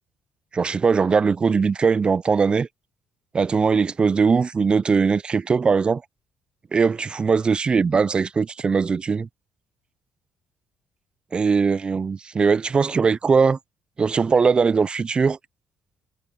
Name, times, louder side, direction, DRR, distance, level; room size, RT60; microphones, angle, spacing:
voice 1, 0.5-2.7 3.3-6.0 6.7-9.3 11.3-13.6 14.0-15.4, right 5 dB, 30° right, 0.3 m, -20 dB
cardioid pair, 95°, 3 cm